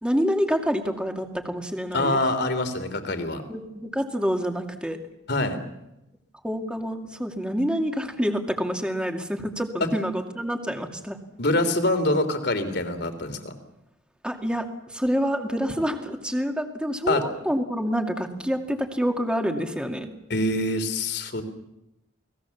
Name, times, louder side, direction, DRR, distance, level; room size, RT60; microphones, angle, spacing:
voice 1, 0.0-2.2 3.5-5.0 6.4-11.2 14.2-20.1, equal, 5° right, 4 dB, 2.4 m, -27 dB
voice 2, 1.9-3.4 5.3-5.6 11.4-13.5 17.1-17.2 20.3-21.4, left 2 dB, 60° left, 9 dB, 3.3 m, -25 dB
30.0 x 20.0 x 7.2 m, 0.91 s
head